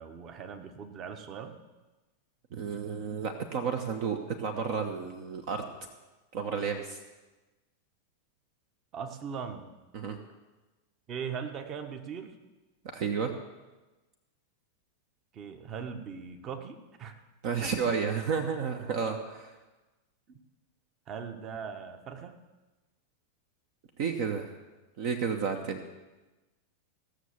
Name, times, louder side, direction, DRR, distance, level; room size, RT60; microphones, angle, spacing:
voice 1, 0.0-1.6 8.9-9.7 11.1-12.4 15.3-17.1 17.6-17.7 20.3-20.4 21.1-22.4, right 6 dB, 30° right, 7 dB, 1.2 m, -40 dB
voice 2, 2.5-5.6 6.3-7.0 9.9-10.2 12.9-13.3 17.4-19.5 24.0-24.5 25.0-25.8, right 6 dB, 50° right, 5 dB, 1.0 m, -31 dB
16.0 x 6.6 x 7.1 m, 1.2 s
figure-of-eight pair, 90°, 0 cm